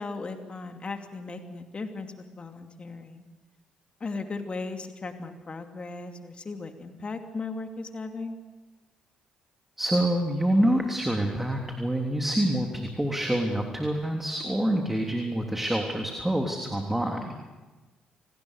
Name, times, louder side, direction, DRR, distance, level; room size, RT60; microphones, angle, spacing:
voice 1, 0.0-3.2 4.0-8.4, left 3 dB, 40° left, 6 dB, 2.6 m, -37 dB
voice 2, 9.8-17.4, right 1 dB, 10° right, 2 dB, 3.3 m, -26 dB
28.5 x 19.5 x 6.7 m, 1.2 s
hypercardioid pair, 45°, 3 cm